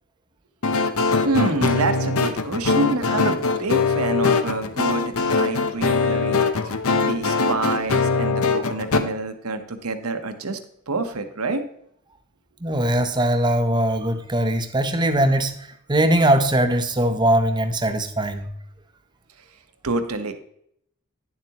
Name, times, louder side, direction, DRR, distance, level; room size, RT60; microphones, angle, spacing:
sound 1, 0.6-9.0, left 4 dB, 75° left, 0.8 m, -22 dB
voice 1, 1.2-10.6 10.9-11.6 19.8-20.3, right 2 dB, 85° right, 8 dB, 1.0 m, -27 dB
voice 2, 12.6-15.6 15.9-18.5, right 1 dB, 20° right, 7 dB, 0.7 m, -20 dB
10.5 x 7.4 x 2.9 m, 0.70 s
head